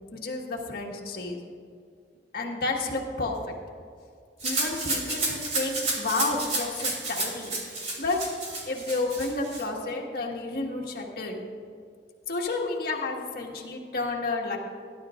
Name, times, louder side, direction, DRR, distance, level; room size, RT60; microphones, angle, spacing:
voice 1, 0.1-1.4 2.3-3.4 4.4-8.3 8.6-11.4 12.3-14.6, left 3 dB, 60° left, -1 dB, 1.6 m, -31 dB
Rattle (instrument), 4.4-9.6, right 2 dB, 40° right, 3.1 m, -31 dB
18.5 x 11.0 x 2.5 m, 2.2 s
head